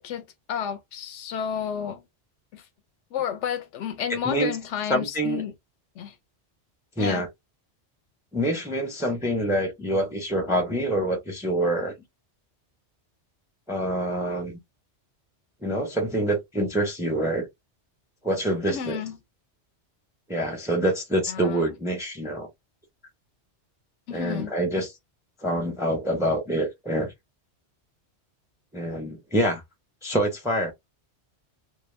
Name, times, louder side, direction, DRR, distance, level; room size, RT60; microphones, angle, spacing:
voice 1, 0.0-2.1 2.5-2.6 3.1-5.5 6.0-6.1 7.0-7.2 18.7-19.2 21.3-21.6 24.1-24.5, left 8 dB, 80° left, 0.9 m, -31 dB
voice 2, 4.1-4.5 4.9-5.4 7.0-7.3 8.3-11.9 13.7-14.6 15.6-17.5 18.2-19.0 20.3-22.5 24.1-24.9 25.4-27.1 28.7-29.6 30.0-30.7, right 1 dB, 5° right, 0.5 m, -26 dB
2.2 x 2.0 x 3.1 m
omnidirectional pair, 1.2 m